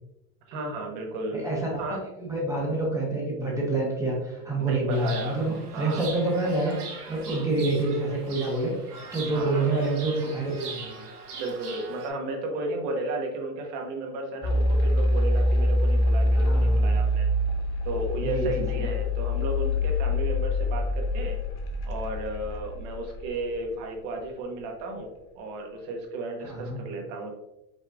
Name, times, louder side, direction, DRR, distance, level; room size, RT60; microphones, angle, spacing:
voice 1, 0.5-2.0 4.6-5.4 5.7-6.0 9.3-9.7 11.3-17.3 17.8-21.4 21.8-27.4, right 2 dB, 50° right, 1 dB, 1.3 m, -33 dB
voice 2, 1.3-8.7 9.1-11.0 16.4-16.9 18.2-18.8 26.5-26.8, right 2 dB, 5° right, -3 dB, 1.0 m, -28 dB
Chirp tweet, 4.9-12.1, right 4 dB, 90° right, 1.2 m, -41 dB
sound 1, 14.4-23.5, left 1 dB, 30° left, 0.8 m, -25 dB
5.4 x 3.2 x 2.5 m, 0.90 s
supercardioid pair, 135°, 45 cm